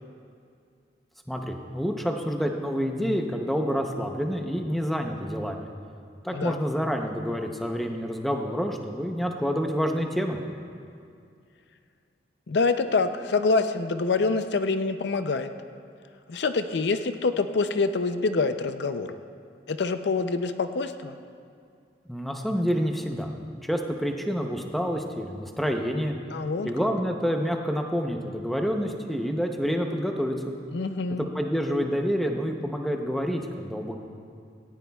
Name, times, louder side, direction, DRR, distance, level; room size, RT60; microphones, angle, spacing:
voice 1, 1.3-5.7 6.2-10.4 22.1-23.3 23.6-26.1 26.6-30.5 31.1-34.0, equal, ahead, 3 dB, 0.7 m, -28 dB
voice 2, 12.5-15.5 16.3-19.1 19.7-21.1 26.3-26.7 30.7-31.3, left 4 dB, 70° left, 9 dB, 0.5 m, -26 dB
18.0 x 15.0 x 2.3 m, 2.4 s
head